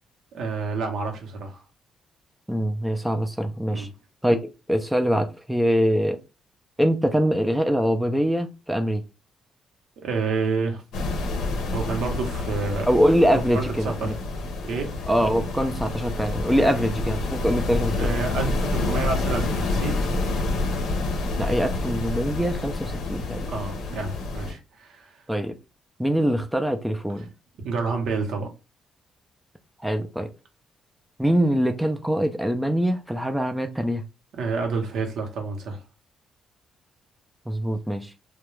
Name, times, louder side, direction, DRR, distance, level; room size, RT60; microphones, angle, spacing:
voice 1, 0.3-1.6 3.7-3.9 10.0-10.8 11.7-12.9 13.3-14.1 14.6-14.9 16.6-16.7 18.0-20.0 23.5-25.2 27.6-28.5 34.3-35.8, right 4 dB, 75° right, 0.7 m, -29 dB
voice 2, 2.5-3.9 4.2-6.2 6.8-9.0 12.9-14.1 15.1-18.1 21.4-23.5 25.3-25.5 26.0-27.3 29.8-30.3 31.2-34.0 37.5-38.1, equal, 5° right, 0.3 m, -23 dB
sound 1, 10.9-24.5, left 2 dB, 85° left, 0.6 m, -28 dB
2.3 x 2.1 x 3.0 m
cardioid pair, 90°, 0 cm